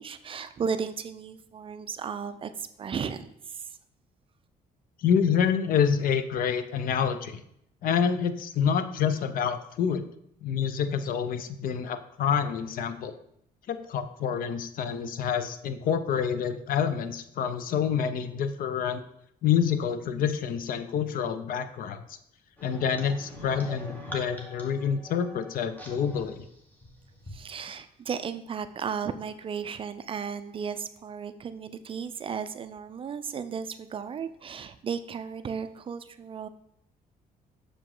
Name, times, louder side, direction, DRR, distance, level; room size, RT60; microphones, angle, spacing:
voice 1, 0.0-3.6 27.3-36.5, right 6 dB, 35° right, 11 dB, 0.4 m, -35 dB
voice 2, 5.0-7.4 7.8-10.0 10.4-13.2 13.7-19.0 19.4-22.0 22.6-26.5, left 7 dB, 65° left, 11 dB, 0.6 m, -27 dB
sound 1, 22.6-27.4, equal, 10° left, 1.3 m, -44 dB
6.5 x 4.9 x 3.8 m, 0.74 s
cardioid pair, 125°, 16 cm